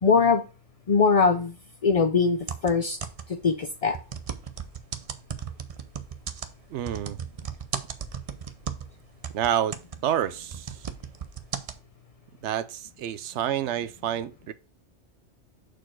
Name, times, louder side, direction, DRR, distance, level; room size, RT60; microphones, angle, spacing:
voice 1, 0.0-0.4 0.9-1.5 1.8-3.0 3.4-4.0, left 5 dB, 50° left, 0.4 m, -21 dB
sound 1, 2.4-3.5 3.9-9.0 9.2-11.8, right 7 dB, 45° right, 0.5 m, -36 dB
voice 2, 6.7-7.2 9.3-9.8 10.0-10.9 12.4-14.5, right 10 dB, 70° right, 0.8 m, -28 dB
6.4 x 4.4 x 4.5 m
omnidirectional pair, 1.3 m